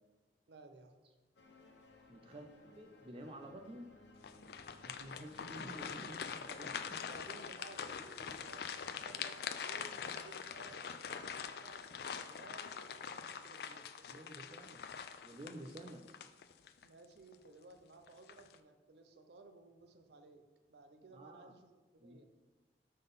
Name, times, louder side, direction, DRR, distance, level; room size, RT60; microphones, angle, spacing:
voice 1, 0.5-1.0 7.0-13.9 16.8-22.3, right 2 dB, 75° right, 7 dB, 0.6 m, -58 dB
sound 1, 1.4-6.9, left 2 dB, 90° left, 0.8 m, -61 dB
voice 2, 2.1-3.9 4.8-7.0 8.0-8.4 14.0-14.8 15.2-16.1 21.1-21.5 22.0-22.3, right 1 dB, 30° right, 4 dB, 0.4 m, -51 dB
sound 2, 4.2-16.9 17.3-17.5 18.1-18.6, left 7 dB, 60° left, 0.3 m, -44 dB
5.5 x 3.8 x 5.4 m, 1.2 s
head